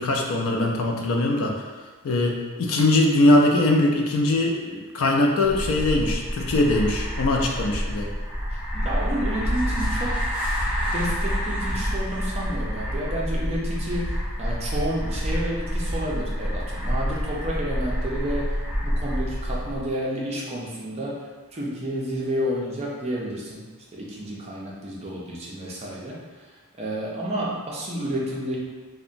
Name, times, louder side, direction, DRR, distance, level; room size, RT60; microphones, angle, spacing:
voice 1, 0.0-1.6 2.0-8.1, left 2 dB, 70° left, 1 dB, 0.4 m, -21 dB
sound 1, 5.5-19.9, equal, 10° right, 1.0 m, -28 dB
voice 2, 8.5-10.2 10.9-23.6 23.9-26.5 26.8-28.6, right 1 dB, 30° right, -4 dB, 0.5 m, -30 dB
2.8 x 2.1 x 2.5 m, 1.3 s
head